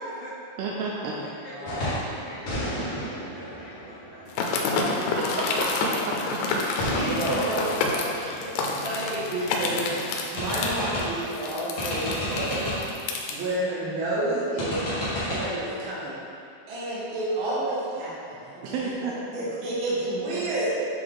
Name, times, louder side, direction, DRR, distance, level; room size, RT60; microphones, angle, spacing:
voice 1, 0.0-0.6 1.2-4.8 8.3-8.5 19.4-19.6, equal, 70° left, -10 dB, 1.9 m, -43 dB
voice 2, 0.6-1.2 4.8-5.0 5.4-6.1 6.8-6.9 7.3-7.4 8.1-8.4 18.6-19.1, right 4 dB, 85° right, -3 dB, 2.5 m, -31 dB
voice 3, 1.5-1.8 5.3-5.4 5.7-6.0 6.9-8.5 8.8-10.0 10.3-12.7 13.3-14.9 15.2-16.1 16.7-18.7 19.0-20.8, right 1 dB, 55° right, -9 dB, 1.5 m, -30 dB
sound 1, 1.7-2.1 2.5-5.1 6.8-9.5 9.8-9.9 10.4-11.3 11.8-13.0 14.6-15.4, equal, 50° left, 1.8 m, -32 dB
sound 2, 4.3-13.3, left 3 dB, 90° left, 2.7 m, -28 dB
7.5 x 4.6 x 3.8 m, 2.6 s
omnidirectional pair, 4.5 m